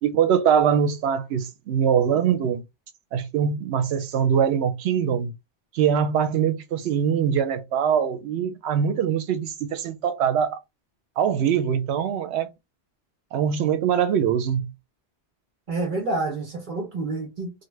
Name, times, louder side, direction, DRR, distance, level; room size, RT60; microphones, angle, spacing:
voice 1, 0.0-2.6 3.1-5.3 5.7-10.6 11.2-12.5 13.3-14.7, right 8 dB, 85° right, 0.8 m, -23 dB
voice 2, 15.7-17.6, right 2 dB, 55° right, 0.8 m, -28 dB
2.8 x 2.1 x 3.1 m
omnidirectional pair, 1.1 m